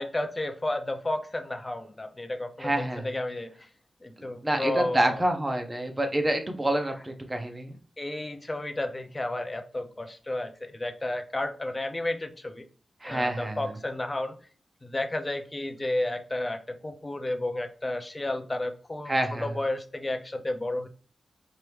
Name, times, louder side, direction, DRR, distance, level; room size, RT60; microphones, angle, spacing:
voice 1, 0.0-3.5 4.0-5.2 8.0-12.6 13.0-14.4 14.8-20.9, left 1 dB, 20° left, 6 dB, 0.6 m, -32 dB
voice 2, 2.6-3.1 4.2-7.7 13.0-13.6 19.1-19.5, right 1 dB, 15° right, 4 dB, 0.8 m, -27 dB
4.5 x 2.6 x 3.3 m, 0.41 s
wide cardioid pair, 135°, 0 cm